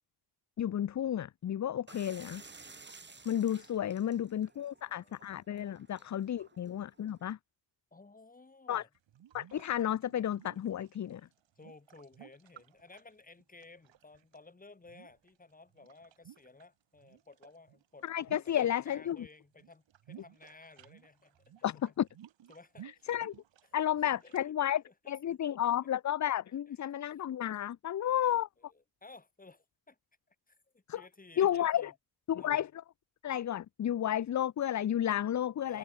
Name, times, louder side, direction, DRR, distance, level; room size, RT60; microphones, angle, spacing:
voice 1, 0.6-2.4 3.3-7.4 8.7-8.8 9.3-11.2 18.1-19.2 21.6-22.1 23.1-23.3 23.7-28.5 30.9-31.0 31.4-31.9 32.3-32.7 33.2-35.8, left 11 dB, 40° left, 0.5 m, -32 dB
sound 1, 1.9-7.3, right 4 dB, 25° right, 3.4 m, -55 dB
voice 2, 4.5-5.1 5.7-6.1 6.4-6.5 7.9-8.9 11.6-18.1 18.3-21.9 22.5-23.1 23.6-25.4 26.7-26.9 28.0-30.0 30.3-31.9 32.4-32.5 35.6-35.8, left 3 dB, 20° left, 3.0 m, -57 dB
sound 2, 8.9-14.4 14.8-16.6 16.9-19.2 19.5-24.4, right 11 dB, 80° right, 2.0 m, -57 dB
wide cardioid pair, 145°, 44 cm